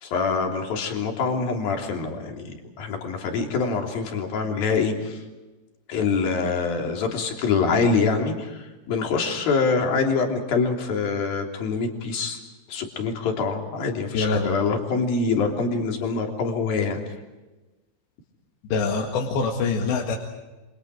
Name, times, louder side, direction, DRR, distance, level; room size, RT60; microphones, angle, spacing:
voice 1, 0.0-5.2 5.9-12.4 12.7-17.0, left 4 dB, 50° left, 2 dB, 4.8 m, -25 dB
voice 2, 14.1-14.6 18.7-20.2, left 4 dB, 70° left, 1 dB, 4.0 m, -24 dB
29.0 x 26.0 x 4.9 m, 1.1 s
omnidirectional pair, 5.5 m